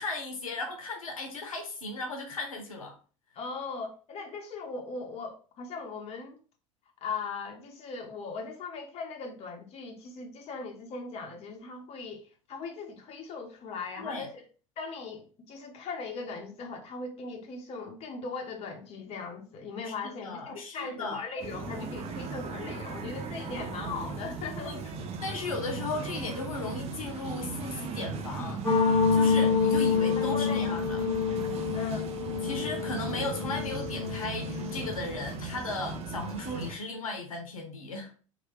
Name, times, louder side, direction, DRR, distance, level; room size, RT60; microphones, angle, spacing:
voice 1, 0.0-3.0 14.0-14.3 19.9-21.2 23.6-23.7 24.6-24.8 25.2-28.6 29.1-31.0 32.4-38.1, left 3 dB, 80° left, 0.8 m, -36 dB
voice 2, 3.3-6.4 7.0-14.4 14.8-24.8 30.2-30.7 31.7-32.1, left 4 dB, 35° left, 0.8 m, -39 dB
sound 1, 21.4-36.8, right 4 dB, 35° right, 0.6 m, -38 dB
sound 2, 28.6-34.9, left 5 dB, 15° left, 1.4 m, -27 dB
3.2 x 2.5 x 3.0 m
figure-of-eight pair, 75°, 18 cm